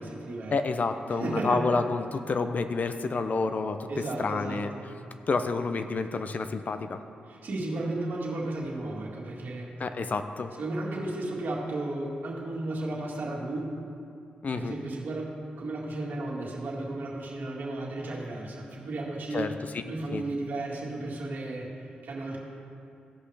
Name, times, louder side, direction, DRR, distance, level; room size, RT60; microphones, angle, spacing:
voice 1, 0.0-0.5 1.2-1.7 3.9-4.8 7.3-9.7 10.6-13.7 14.5-19.5 19.8-21.7 22.0-22.4, right 2 dB, 65° right, -4 dB, 2.0 m, -34 dB
voice 2, 0.5-3.9 4.2-4.7 5.3-7.0 9.8-10.5 14.4-14.7 19.3-19.8 20.1-20.2, left 4 dB, 50° left, 9 dB, 0.6 m, -29 dB
16.0 x 5.5 x 3.4 m, 2.5 s
supercardioid pair, 55°, 3 cm